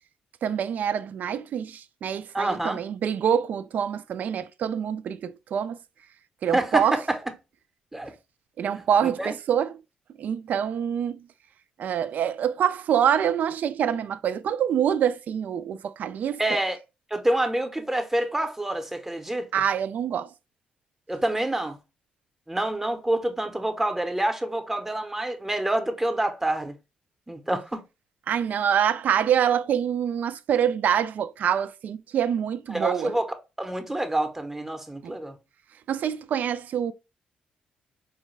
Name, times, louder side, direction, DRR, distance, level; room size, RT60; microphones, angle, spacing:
voice 1, 0.4-5.8 6.4-7.0 8.6-9.7 10.2-11.2 11.8-16.4 19.5-20.3 28.3-33.1 35.0-35.2 35.9-36.9, right 8 dB, 65° right, 0.3 m, -25 dB
voice 2, 2.3-2.8 6.5-7.0 7.9-8.1 9.0-9.3 16.4-16.8 17.1-19.5 21.1-21.8 22.5-26.7 27.3-27.8 32.7-35.4, right 1 dB, 10° right, 0.7 m, -27 dB
4.7 x 2.2 x 3.1 m
supercardioid pair, 60°, 3 cm